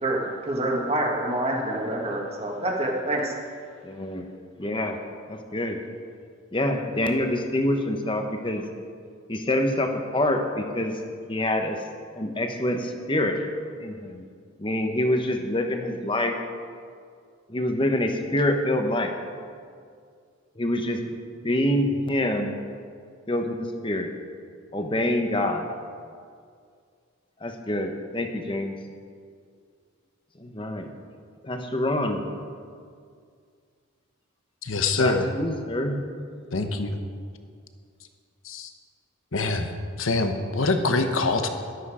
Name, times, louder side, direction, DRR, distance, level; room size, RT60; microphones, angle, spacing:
voice 1, 0.0-3.3, right 1 dB, 30° right, 0 dB, 1.8 m, -27 dB
voice 2, 3.8-4.3 4.6-5.0 5.3-5.8 6.5-8.7 9.3-11.0 11.3-11.8 12.1-13.4 13.8-14.3 14.6-16.4 17.5-19.1 20.6-21.1 21.4-22.6 23.3-24.1 24.7-25.7 27.4-28.7 30.4-30.9 31.4-32.2 35.0-36.0, left 1 dB, 25° left, 5 dB, 1.0 m, -26 dB
voice 3, 34.6-35.3 36.5-37.0 38.4-38.7 39.3-39.7 40.0-41.5, left 3 dB, 75° left, 7 dB, 1.1 m, -24 dB
12.5 x 12.0 x 5.0 m, 2.2 s
head